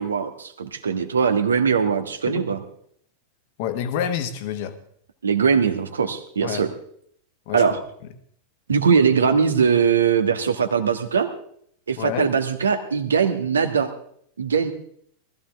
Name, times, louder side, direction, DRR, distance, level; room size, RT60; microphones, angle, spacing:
voice 1, 0.0-2.6 5.2-6.7 7.5-7.8 8.7-11.3 11.9-13.9 14.4-14.7, right 6 dB, 70° right, 8 dB, 1.4 m, -21 dB
voice 2, 3.6-4.8 6.4-6.6 7.5-7.6 12.0-12.3, left 9 dB, 50° left, 10 dB, 1.5 m, -27 dB
19.5 x 14.5 x 3.5 m, 0.65 s
figure-of-eight pair, 90°, 0 cm